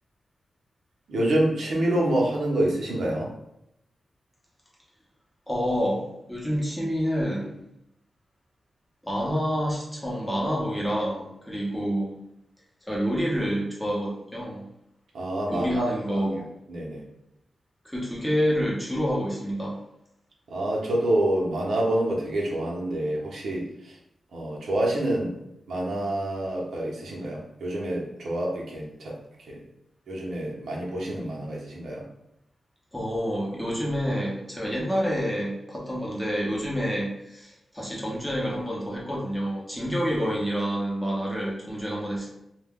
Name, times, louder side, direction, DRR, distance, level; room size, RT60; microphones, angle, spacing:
voice 1, 1.1-3.3 15.1-16.4 16.7-17.0 20.5-24.0 24.3-25.3 25.7-29.6 30.1-32.0, right 1 dB, 85° right, -2 dB, 0.7 m, -27 dB
voice 2, 5.5-7.6 9.0-12.1 12.9-14.6 15.5-16.5 17.8-19.8 32.9-42.3, equal, 5° left, -4 dB, 0.7 m, -28 dB
2.2 x 2.1 x 3.4 m, 0.82 s
wide cardioid pair, 155°, 0 cm